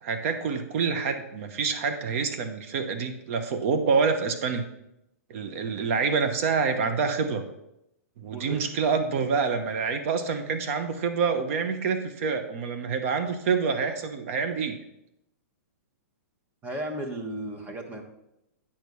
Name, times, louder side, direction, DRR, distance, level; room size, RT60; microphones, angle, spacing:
voice 1, 0.0-4.7 5.3-7.5 8.2-14.8, right 5 dB, 55° right, 8 dB, 1.0 m, -27 dB
voice 2, 8.3-8.6 16.6-18.0, right 1 dB, 20° right, 3 dB, 1.3 m, -34 dB
9.0 x 4.7 x 5.4 m, 0.85 s
hypercardioid pair, 130°, 9 cm